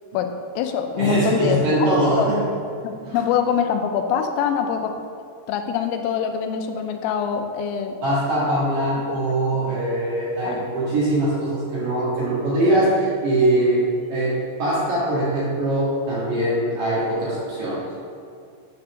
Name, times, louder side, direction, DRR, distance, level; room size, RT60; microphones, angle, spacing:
voice 1, 0.1-1.9 2.2-2.3 2.8-5.0 5.5-8.0 9.1-9.2 9.4-9.8 10.4-10.7, left 7 dB, 90° left, 6 dB, 3.3 m, -24 dB
voice 2, 1.0-2.4 3.1-3.2 8.0-13.8 14.1-14.3 14.6-17.8, right 1 dB, 55° right, -8 dB, 2.6 m, -22 dB
9.5 x 4.4 x 6.4 m, 2.4 s
omnidirectional pair, 5.8 m